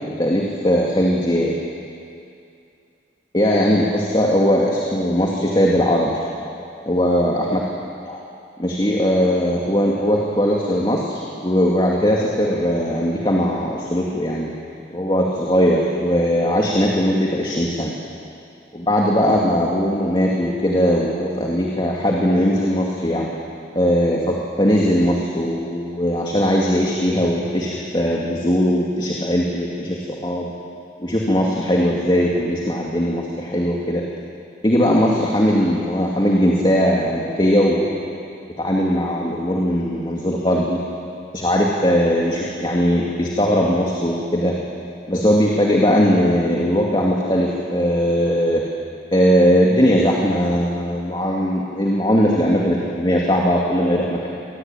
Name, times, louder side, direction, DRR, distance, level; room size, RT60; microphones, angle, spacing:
voice 1, 0.2-1.6 3.3-6.2 6.8-7.6 8.1-8.2 8.6-14.5 14.9-17.9 18.7-23.3 23.7-30.5 31.0-34.1 34.6-38.2 38.6-40.8 41.3-44.6 45.1-48.7 49.1-54.3, equal, 25° left, -2 dB, 2.3 m, -19 dB
26.0 x 20.0 x 9.1 m, 2.5 s
head